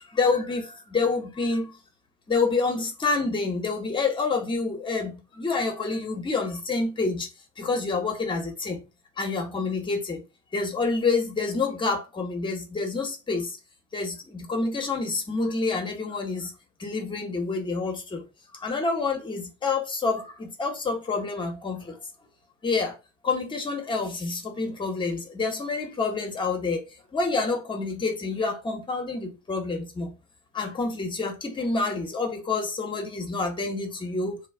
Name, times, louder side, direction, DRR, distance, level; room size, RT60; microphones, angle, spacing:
voice 1, 0.0-1.8 2.3-7.3 7.6-8.8 9.2-10.2 10.5-13.6 13.9-16.5 16.8-18.3 18.5-22.0 22.6-22.9 23.2-26.8 27.1-30.2 30.5-34.5, left 4 dB, 10° left, 0.7 m, -28 dB
2.3 x 2.1 x 3.3 m
hypercardioid pair, 85°, 40 cm